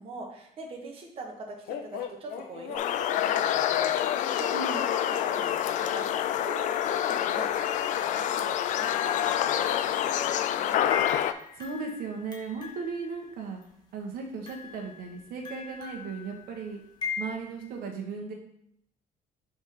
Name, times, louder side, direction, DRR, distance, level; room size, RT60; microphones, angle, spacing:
voice 1, 0.0-10.9, right 2 dB, 35° right, 0 dB, 1.1 m, -43 dB
sound 1, 1.7-6.5, left 8 dB, 75° left, 0.7 m, -41 dB
sound 2, 2.8-11.3, left 11 dB, 55° left, 0.4 m, -27 dB
voice 2, 4.5-4.8 11.5-13.6 13.9-16.8 17.2-18.3, right 4 dB, 70° right, 1 dB, 1.2 m, -36 dB
sound 3, 5.4-6.0 6.7-13.7 14.4-17.8, left 5 dB, 25° left, 1.0 m, -42 dB
5.0 x 3.6 x 5.7 m, 0.72 s
cardioid pair, 160°, 16 cm